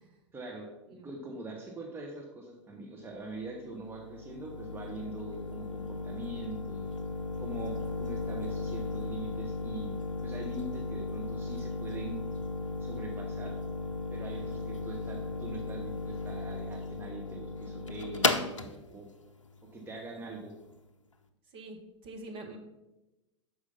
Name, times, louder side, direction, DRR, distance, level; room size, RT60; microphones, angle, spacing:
voice 1, 0.3-6.9 7.4-9.9 10.2-12.2 12.8-13.6 14.1-19.1 19.7-20.6, right 2 dB, 15° right, 1 dB, 1.0 m, -43 dB
sound 1, 3.1-20.8, left 3 dB, 80° left, 0.6 m, -36 dB
voice 2, 21.5-22.6, right 2 dB, 35° right, 3 dB, 1.3 m, -46 dB
6.5 x 4.9 x 5.5 m, 1.0 s
figure-of-eight pair, 95°, 16 cm